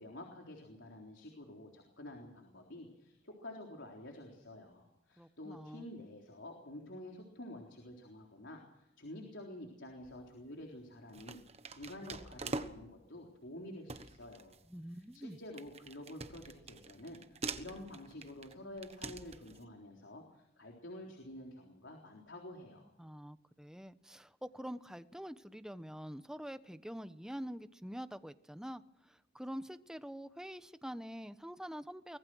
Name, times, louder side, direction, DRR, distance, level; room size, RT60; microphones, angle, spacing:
voice 1, 0.0-11.4 11.7-14.6 15.1-22.9, left 1 dB, 90° left, 0 dB, 3.8 m, -49 dB
voice 2, 5.2-5.9 14.7-15.4 23.0-32.2, equal, 5° right, 11 dB, 1.0 m, -46 dB
sound 1, 10.0-10.4 11.1-13.0 13.5-13.6 13.9-19.6, right 3 dB, 35° right, 1.3 m, -45 dB
24.5 x 19.5 x 6.3 m, 0.86 s
head